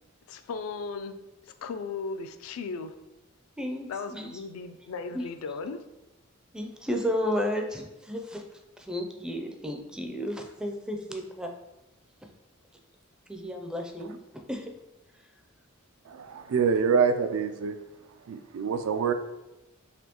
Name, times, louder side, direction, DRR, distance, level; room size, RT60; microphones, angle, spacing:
voice 1, 0.3-1.2 1.6-2.9 3.9-5.8, left 4 dB, 75° left, 9 dB, 0.3 m, -36 dB
voice 2, 3.6-4.3 5.1-5.3 6.5-8.4 8.8-11.5 13.3-14.7, equal, 5° right, 3 dB, 0.4 m, -33 dB
voice 3, 16.1-17.8 18.3-19.1, right 6 dB, 75° right, 8 dB, 0.4 m, -26 dB
4.2 x 3.0 x 2.9 m, 0.96 s
head